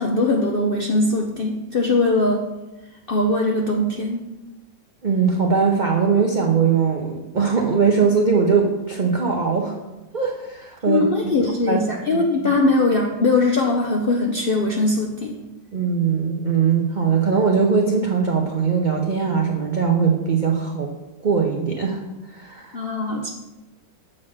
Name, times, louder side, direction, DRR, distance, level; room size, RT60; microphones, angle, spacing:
voice 1, 0.0-2.5 3.1-4.2 10.9-15.4 22.7-23.3, left 2 dB, 80° left, 0 dB, 0.5 m, -21 dB
voice 2, 5.0-9.8 10.1-11.8 12.1-12.5 15.7-20.9 21.2-22.0 22.3-22.8, right 5 dB, 70° right, 0 dB, 0.4 m, -21 dB
7.4 x 4.0 x 6.3 m, 1.1 s
omnidirectional pair, 1.9 m